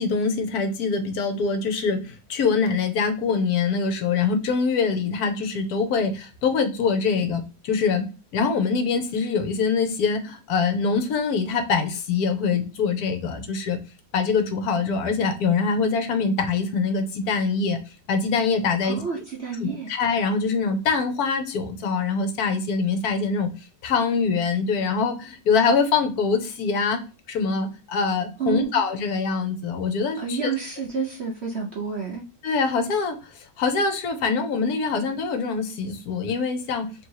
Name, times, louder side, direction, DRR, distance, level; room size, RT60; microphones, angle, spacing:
voice 1, 0.0-8.1 8.3-13.8 14.1-17.8 18.1-19.2 19.6-23.5 23.8-27.0 27.3-30.5 32.4-36.9, left 5 dB, 65° left, 7 dB, 1.1 m, -24 dB
voice 2, 18.8-19.9 28.4-28.8 30.2-32.2, right 6 dB, 55° right, 0 dB, 0.7 m, -29 dB
3.0 x 2.8 x 4.5 m, 0.32 s
omnidirectional pair, 1.9 m